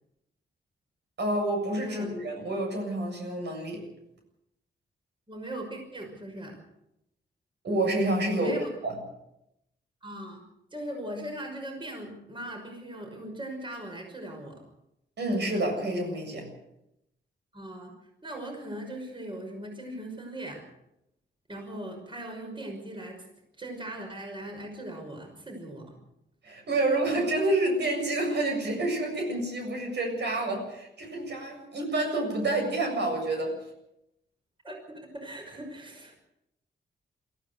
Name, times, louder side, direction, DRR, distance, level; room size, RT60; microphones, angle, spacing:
voice 1, 1.2-3.8 7.6-8.5 8.8-9.0 15.2-16.5 26.4-30.6 31.0-33.5, right 2 dB, 70° right, 2 dB, 7.5 m, -28 dB
voice 2, 1.8-2.1 5.3-6.6 8.3-8.7 10.0-10.4 10.7-14.6 17.5-17.9 18.2-20.6 21.5-23.3 23.6-25.9 34.6-36.2, right 1 dB, 25° right, 2 dB, 5.7 m, -39 dB
23.0 x 15.0 x 8.1 m, 0.84 s
wide cardioid pair, 110°, 18 cm